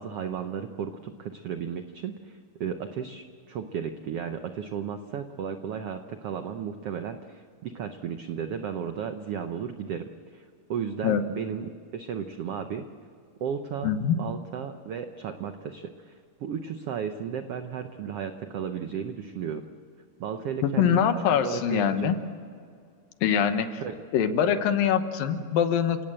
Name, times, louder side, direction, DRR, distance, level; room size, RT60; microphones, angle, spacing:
voice 1, 0.0-12.9 13.4-13.9 14.2-16.1 16.4-19.6 20.2-21.0 21.3-22.1 23.8-23.9, right 7 dB, 80° right, 7 dB, 1.3 m, -34 dB
voice 2, 13.8-14.2 20.6-22.2 23.2-23.8 24.1-26.0, left 8 dB, 80° left, 9 dB, 2.9 m, -23 dB
29.5 x 17.5 x 7.7 m, 2.3 s
omnidirectional pair, 4.0 m